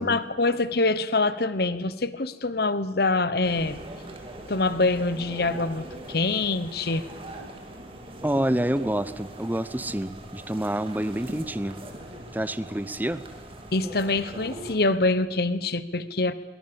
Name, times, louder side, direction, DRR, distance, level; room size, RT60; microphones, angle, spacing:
voice 1, 0.0-3.8 4.5-7.1 13.7-16.3, left 3 dB, 55° left, 14 dB, 1.1 m, -25 dB
sound 1, 3.4-14.7, right 1 dB, 30° right, 2.6 m, -41 dB
voice 2, 8.2-11.8 12.3-13.2, right 1 dB, 10° right, 15 dB, 0.7 m, -28 dB
23.0 x 23.0 x 7.1 m, 1.2 s
head